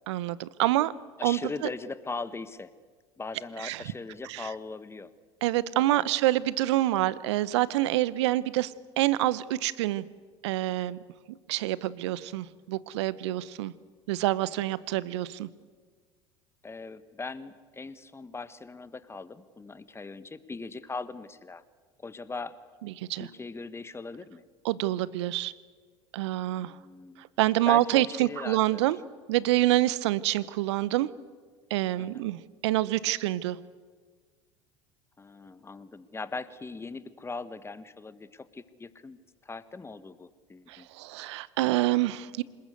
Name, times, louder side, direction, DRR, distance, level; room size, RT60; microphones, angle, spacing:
voice 1, 0.1-0.9 1.2-1.4 3.6-3.8 4.3-4.5 5.4-10.0 10.4-11.0 11.3-13.7 14.1-15.5 23.0-23.3 24.6-25.5 26.1-26.7 27.2-29.0 29.3-31.1 31.7-33.6 40.7-42.4, right 16 dB, 70° right, 19 dB, 0.9 m, -27 dB
voice 2, 1.2-2.7 3.2-5.1 5.9-6.2 16.6-21.6 22.0-22.6 23.2-24.4 26.7-27.2 27.6-28.9 32.0-32.3 35.2-39.2 39.4-40.9, left 3 dB, 15° left, 14 dB, 1.4 m, -40 dB
27.0 x 20.0 x 8.2 m, 1.5 s
figure-of-eight pair, 70°, 15 cm